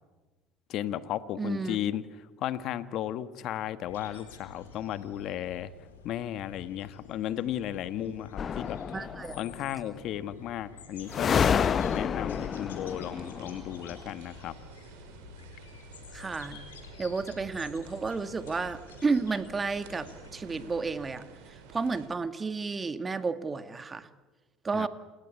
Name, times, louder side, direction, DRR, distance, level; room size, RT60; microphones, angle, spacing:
voice 1, 0.7-2.0 2.4-5.7 6.0-8.8 9.4-14.5 24.7-24.9, left 11 dB, 55° left, 13 dB, 1.5 m, -34 dB
voice 2, 1.4-1.8 8.1-8.2 8.9-9.4 16.1-16.6 17.0-24.1 24.6-24.9, right 4 dB, 25° right, 11 dB, 1.8 m, -32 dB
sound 1, 3.9-21.0, left 5 dB, 85° left, 4.7 m, -49 dB
sound 2, 8.4-9.5 11.1-14.0, left 7 dB, 40° left, 0.7 m, -29 dB
sound 3, 11.9-22.1, right 6 dB, 70° right, 5.0 m, -51 dB
28.5 x 19.0 x 9.6 m, 1.3 s
hypercardioid pair, 65°, 0 cm